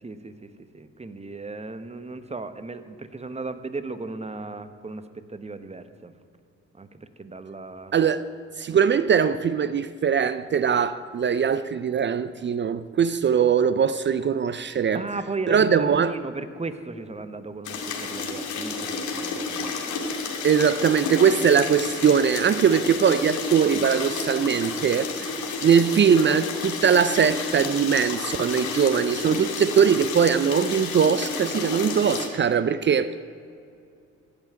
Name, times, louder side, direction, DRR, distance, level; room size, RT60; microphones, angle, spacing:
voice 1, 0.0-6.1 6.7-8.0 14.9-19.8 29.2-29.4, right 3 dB, 20° right, 1.1 m, -36 dB
voice 2, 7.9-8.2 8.6-15.0 15.5-16.1 20.4-25.3 25.6-33.2, right 7 dB, 40° right, 0.5 m, -21 dB
sound 1, 17.6-32.3, left 4 dB, 75° left, 2.0 m, -31 dB
Livestock farm animals working animals, 20.1-29.7 30.0-30.4 30.6-31.3 31.6-32.3, right 2 dB, 55° right, 3.8 m, -51 dB
15.0 x 5.7 x 9.2 m
supercardioid pair, 60°, 30 cm